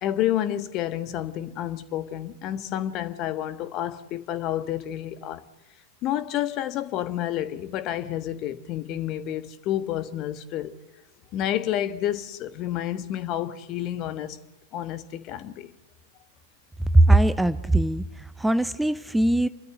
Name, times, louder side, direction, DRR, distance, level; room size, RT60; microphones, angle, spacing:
voice 1, 0.0-5.4 6.0-10.7 11.3-14.4 14.7-15.7, left 12 dB, 40° left, 1.4 m, -29 dB
voice 2, 16.9-19.5, right 1 dB, 5° right, 0.6 m, -20 dB
29.5 x 13.0 x 7.8 m
figure-of-eight pair, 90°, 0 cm